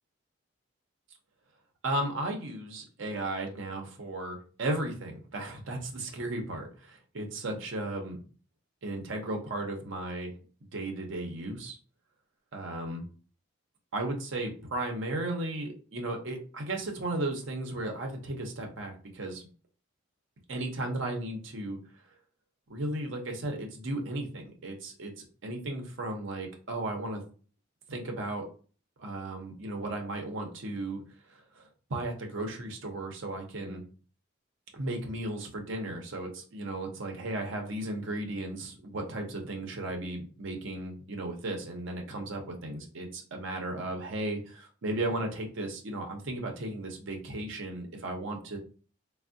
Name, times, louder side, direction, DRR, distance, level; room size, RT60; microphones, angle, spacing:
voice 1, 1.8-8.2 8.8-10.3 10.7-11.8 12.5-13.0 13.9-19.5 20.5-21.8 22.7-27.2 27.9-28.5 29.0-31.0 31.3-33.8 34.7-48.6, right 1 dB, 65° right, 3 dB, 0.6 m, -35 dB
3.4 x 2.0 x 2.5 m, 0.39 s
head